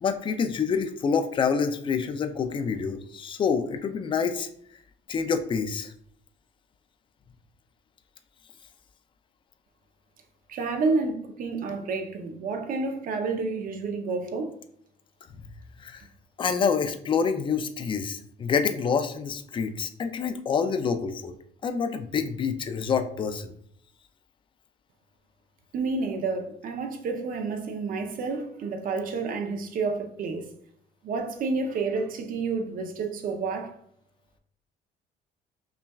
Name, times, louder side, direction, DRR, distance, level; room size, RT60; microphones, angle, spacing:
voice 1, 0.0-4.5 5.1-5.9 15.4-15.5 15.8-16.0 16.4-21.3 21.6-23.5, left 6 dB, 30° left, 0.4 m, -27 dB
voice 2, 10.5-14.5 25.7-30.5 31.0-33.7, right 4 dB, 55° right, 0.7 m, -29 dB
5.5 x 2.3 x 2.3 m
cardioid pair, 110°, 17 cm